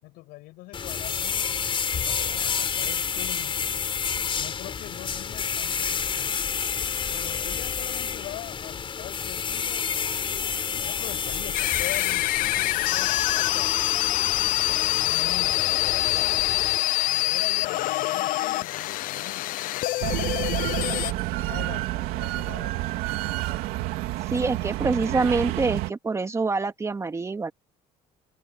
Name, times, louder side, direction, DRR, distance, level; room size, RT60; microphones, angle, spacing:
voice 1, 0.0-1.5 2.1-3.6 4.4-6.4 7.1-10.3 10.7-13.8 14.5-16.6 17.1-20.3 21.4-22.8, left 20 dB, 90° left, 6.5 m, -42 dB
sound 1, 0.7-16.8, left 7 dB, 35° left, 5.3 m, -30 dB
sound 2, 11.5-21.1, left 16 dB, 70° left, 0.7 m, -25 dB
sound 3, 20.0-25.9, right 17 dB, 90° right, 3.3 m, -29 dB
voice 2, 24.3-27.5, right 3 dB, 20° right, 2.6 m, -26 dB
cardioid pair, 130°, 15 cm